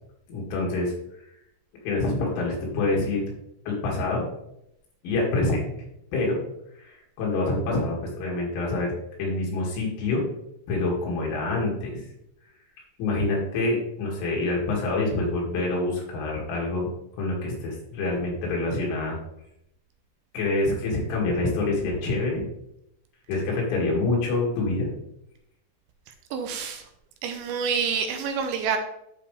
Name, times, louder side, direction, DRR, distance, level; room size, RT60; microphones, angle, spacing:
voice 1, 0.3-0.9 1.8-3.2 3.7-4.2 5.0-5.6 6.1-6.4 6.8-8.9 9.2-10.2 10.7-12.0 13.0-16.9 17.2-19.2 20.3-22.4 23.3-24.9, left 2 dB, 80° left, -2 dB, 5.0 m, -26 dB
voice 2, 26.3-26.8 27.2-28.8, right 6 dB, 80° right, 6 dB, 2.9 m, -27 dB
12.0 x 5.5 x 3.4 m, 0.79 s
omnidirectional pair, 5.5 m